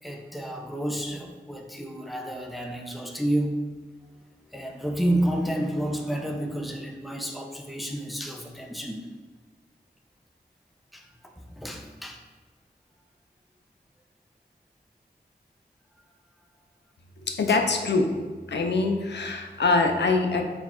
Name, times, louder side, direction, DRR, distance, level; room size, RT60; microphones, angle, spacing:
voice 1, 0.0-3.6 4.5-9.1 10.9-11.1 11.4-12.2 17.5-17.6, right 1 dB, ahead, 3 dB, 0.5 m, -30 dB
voice 2, 17.3-18.1 18.5-20.4, left 3 dB, 90° left, 3 dB, 0.5 m, -23 dB
4.3 x 2.4 x 4.2 m, 1.4 s
wide cardioid pair, 60°, 18 cm